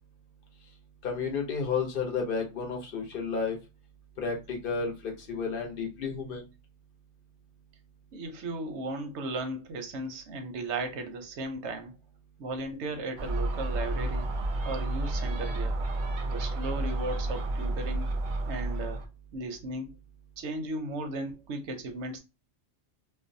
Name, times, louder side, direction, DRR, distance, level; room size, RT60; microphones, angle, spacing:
voice 1, 1.0-3.6 4.2-6.5, left 5 dB, 60° left, 0.8 m, -32 dB
voice 2, 8.1-11.9 12.4-14.3 14.6-15.8 16.3-18.1 18.5-19.0 19.3-19.9 20.4-22.2, right 2 dB, 90° right, 0.9 m, -36 dB
Gull seagull, 13.2-19.1, right 2 dB, 60° right, 0.6 m, -31 dB
2.5 x 2.0 x 2.5 m
omnidirectional pair, 1.1 m